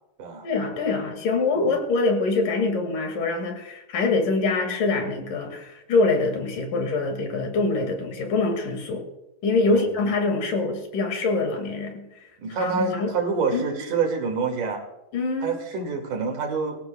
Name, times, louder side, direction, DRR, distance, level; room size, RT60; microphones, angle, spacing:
voice 1, 0.4-9.1 9.4-12.1 12.6-13.1 13.5-13.8 15.1-15.6, left 3 dB, 75° left, 4 dB, 3.8 m, -24 dB
voice 2, 12.4-14.8 15.4-16.8, right 5 dB, 70° right, 3 dB, 3.7 m, -27 dB
24.5 x 14.5 x 2.3 m, 0.92 s
omnidirectional pair, 3.8 m